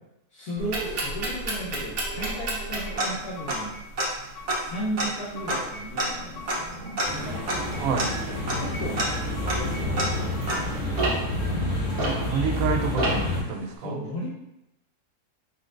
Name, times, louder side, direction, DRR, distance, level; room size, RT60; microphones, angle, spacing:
voice 1, 0.3-3.8 4.6-6.9 8.5-9.2 9.5-10.9 13.8-14.3, right 1 dB, 85° left, -11 dB, 1.8 m, -35 dB
sound 1, 0.6-12.6 13.0-13.4, right 1 dB, 55° right, 1.2 m, -30 dB
sound 2, 2.9-3.8 4.1-4.8 5.1-6.6 6.9-7.8 8.1-8.9 9.1-10.6, right 1 dB, 55° left, 0.6 m, -42 dB
sound 3, 7.0-13.4, left 1 dB, 40° left, 1.8 m, -29 dB
voice 2, 7.7-8.2 12.0-14.1, right 5 dB, 70° right, 4 dB, 0.9 m, -28 dB
4.2 x 4.1 x 2.5 m, 0.86 s
omnidirectional pair, 1.6 m